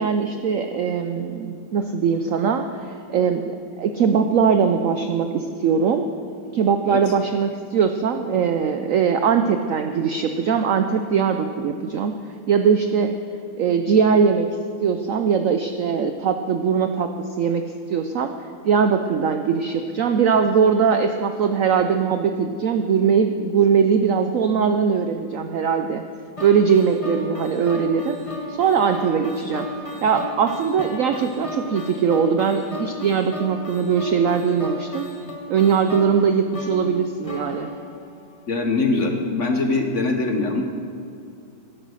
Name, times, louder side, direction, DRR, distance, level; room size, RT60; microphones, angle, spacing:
voice 1, 0.0-6.0 6.5-12.1 12.5-13.1 13.6-14.5 14.8-17.1 17.4-17.6 17.9-18.3 18.6-26.0 26.4-28.2 28.5-29.7 30.0-35.0 35.5-37.7, right 6 dB, 85° right, 7 dB, 0.7 m, -21 dB
sound 1, 26.4-38.6, left 1 dB, 25° left, 0.8 m, -35 dB
voice 2, 38.5-40.6, left 3 dB, 50° left, 4 dB, 1.0 m, -22 dB
11.5 x 10.5 x 6.3 m, 2.4 s
omnidirectional pair, 2.1 m